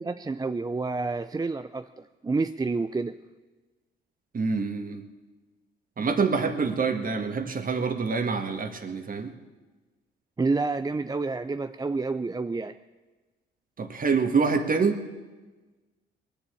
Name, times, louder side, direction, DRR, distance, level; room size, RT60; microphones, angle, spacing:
voice 1, 0.0-3.1 10.4-12.7, right 3 dB, 20° right, 10 dB, 0.5 m, -29 dB
voice 2, 4.3-5.1 6.0-9.3 13.8-15.0, right 5 dB, 40° right, 6 dB, 1.8 m, -26 dB
20.5 x 7.0 x 8.5 m, 1.3 s
supercardioid pair, 65°, 21 cm